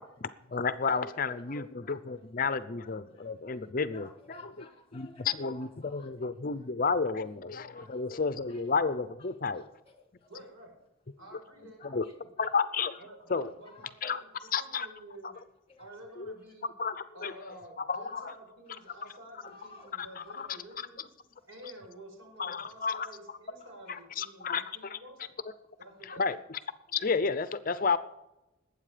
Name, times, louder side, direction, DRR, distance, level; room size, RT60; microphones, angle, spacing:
voice 1, 0.2-4.4 4.9-9.6 11.9-12.0 12.4-13.0 13.3-13.5 14.0-14.2 14.5-14.9 16.8-17.3 17.9-18.3 20.0-20.1 20.4-20.5 22.4-23.1 24.2-24.6 24.9-25.0 26.2-26.4 26.9-28.0, left 5 dB, 40° left, 0.6 m, -31 dB
voice 2, 0.9-1.9 2.7-3.5 3.9-6.1 7.7-8.7 9.4-10.3 11.8-12.5 12.9-13.0 13.7-13.8 15.7-15.8 18.7-19.0 19.4-19.9 20.2-20.5 23.9-24.0 26.9-27.1, left 3 dB, 25° left, 1.7 m, -55 dB
voice 3, 10.3-10.8 11.2-12.3 13.0-15.3 15.8-16.7 17.1-21.0 21.5-25.4 25.8-26.3, right 1 dB, 80° right, 4.8 m, -50 dB
20.0 x 8.6 x 5.0 m
head